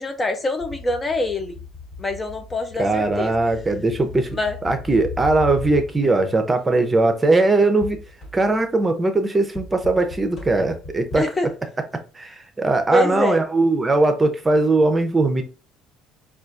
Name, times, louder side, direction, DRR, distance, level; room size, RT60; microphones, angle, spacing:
voice 1, 0.0-1.6 2.0-3.3 4.3-4.6 11.2-11.5 12.9-13.4, left 1 dB, 25° left, 0.5 m, -24 dB
sound 1, 0.6-6.3 7.8-8.7 9.6-11.2, left 4 dB, 45° left, 1.6 m, -37 dB
voice 2, 2.8-8.0 8.3-11.3 12.1-15.4, right 2 dB, 20° right, 0.7 m, -20 dB
4.3 x 2.4 x 2.5 m
hypercardioid pair, 70°, 0 cm